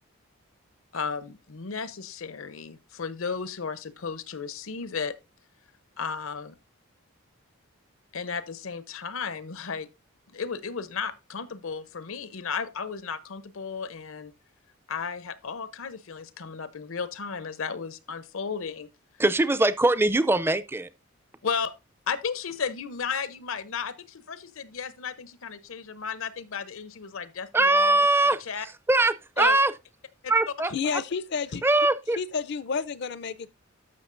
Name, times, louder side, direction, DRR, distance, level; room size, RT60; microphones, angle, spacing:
voice 1, 0.9-5.2 6.0-6.5 8.1-9.9 10.3-14.3 14.9-18.9 21.4-21.7 22.1-28.0 28.5-28.7 29.4-29.6, left 5 dB, 75° left, 0.7 m, -34 dB
voice 2, 19.2-20.9 27.5-28.4 28.9-29.7 30.3-30.7 31.6-32.2, right 2 dB, 10° right, 0.4 m, -21 dB
voice 3, 30.7-31.6 32.2-33.5, left 5 dB, 55° left, 0.5 m, -30 dB
13.0 x 5.9 x 2.5 m
head